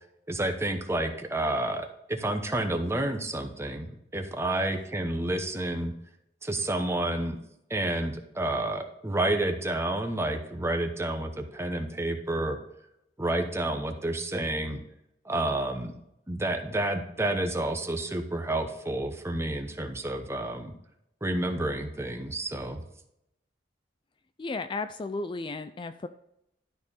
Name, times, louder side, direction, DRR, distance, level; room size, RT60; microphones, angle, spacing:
voice 1, 0.3-5.9 6.4-7.4 7.7-12.6 13.2-14.8 15.2-15.9 16.3-20.7 21.2-22.8, right 1 dB, 15° right, 5 dB, 0.9 m, -30 dB
voice 2, 24.4-26.1, left 3 dB, 25° left, 10 dB, 0.4 m, -34 dB
12.5 x 4.4 x 5.4 m, 0.81 s
head